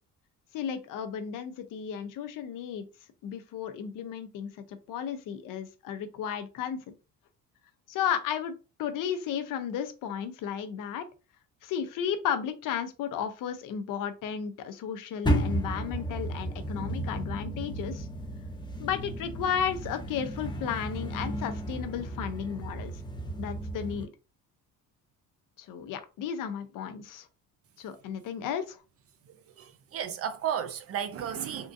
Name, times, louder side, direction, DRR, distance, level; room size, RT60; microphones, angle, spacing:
voice 1, 0.5-2.9 3.2-6.9 7.9-11.1 11.6-18.1 18.8-22.9 23.4-24.1 25.6-27.3 27.8-28.8, left 8 dB, 65° left, 0.7 m, -34 dB
sound 1, 15.2-24.0, right 1 dB, 15° left, 0.5 m, -33 dB
voice 2, 29.6-31.7, right 9 dB, 45° right, 0.4 m, -33 dB
3.7 x 2.5 x 2.5 m
cardioid pair, 135°, 35 cm